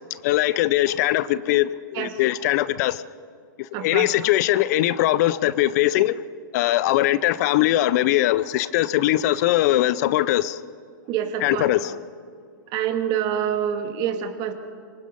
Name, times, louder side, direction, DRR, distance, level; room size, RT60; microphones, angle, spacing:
voice 1, 0.1-3.0 3.6-6.2 6.5-10.6 11.4-12.0, left 14 dB, 55° left, 0.7 m, -21 dB
voice 2, 3.7-4.1 11.1-11.7 12.7-14.5, right 9 dB, 40° right, 2.4 m, -26 dB
25.5 x 24.0 x 5.5 m
hypercardioid pair, 125°, 11 cm